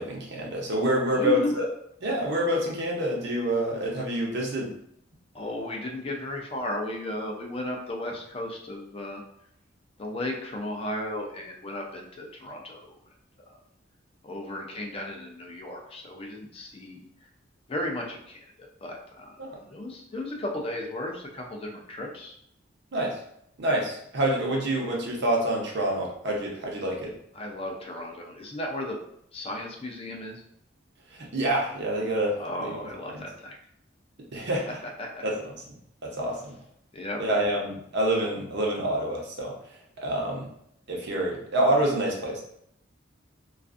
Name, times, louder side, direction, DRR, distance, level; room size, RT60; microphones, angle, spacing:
voice 1, 0.0-1.7 2.0-4.7 19.4-19.5 22.9-23.2 23.6-27.2 31.1-32.8 33.1-33.2 34.3-34.8 35.2-35.4 36.0-36.5 37.2-39.6 40.0-40.5 40.9-42.4, right 1 dB, 60° right, -2 dB, 0.7 m, -27 dB
voice 2, 1.1-1.6 5.3-9.2 10.0-13.0 13.5-13.6 14.2-17.1 17.7-18.5 18.8-22.4 27.3-29.0 29.3-30.4 32.4-33.6 35.0-35.2 36.9-37.2, left 1 dB, 30° left, 0 dB, 0.4 m, -34 dB
2.4 x 2.4 x 2.4 m, 0.73 s
head